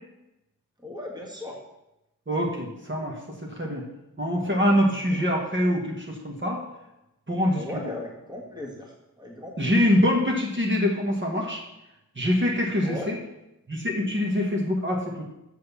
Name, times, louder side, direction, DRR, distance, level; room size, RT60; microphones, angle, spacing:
voice 1, 0.8-1.5 5.1-5.2 7.5-9.7 12.8-13.1, left 2 dB, 10° right, -1 dB, 1.7 m, -37 dB
voice 2, 2.3-3.8 4.2-6.6 7.3-7.8 9.6-11.6 12.1-13.2 13.7-15.2, left 1 dB, 35° right, -2 dB, 1.7 m, -24 dB
6.7 x 6.3 x 7.2 m, 0.91 s
wide cardioid pair, 90°, 35 cm